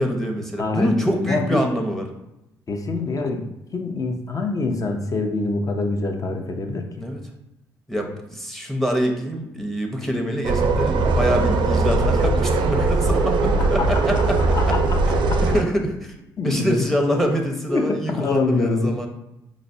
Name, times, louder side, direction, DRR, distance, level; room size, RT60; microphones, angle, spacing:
voice 1, 0.0-2.0 7.0-7.2 7.9-14.4 14.7-14.8 15.4-16.1 16.4-19.1, equal, 5° left, 2 dB, 0.7 m, -25 dB
voice 2, 0.6-1.7 2.7-7.1 13.6-15.4 16.4-16.9 17.7-18.9, left 3 dB, 40° left, 4 dB, 0.6 m, -25 dB
sound 1, 10.4-15.6, right 3 dB, 60° right, 0.4 m, -20 dB
4.9 x 2.0 x 2.6 m, 0.88 s
supercardioid pair, 55°, 9 cm